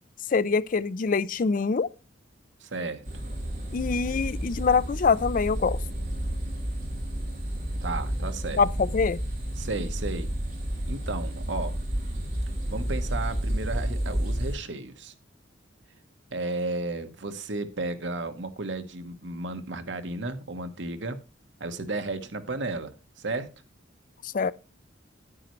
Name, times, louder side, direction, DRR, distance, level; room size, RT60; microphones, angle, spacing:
voice 1, 0.3-1.9 3.7-5.8 8.6-9.2 24.2-24.5, left 5 dB, 45° left, 0.4 m, -24 dB
voice 2, 2.6-3.0 7.8-8.6 9.6-10.3 10.9-11.7 12.7-15.1 16.3-21.2 21.6-23.5, right 2 dB, 70° right, 1.2 m, -33 dB
sound 1, 3.0-14.5, right 1 dB, 35° right, 6.4 m, -31 dB
9.7 x 9.4 x 3.1 m
head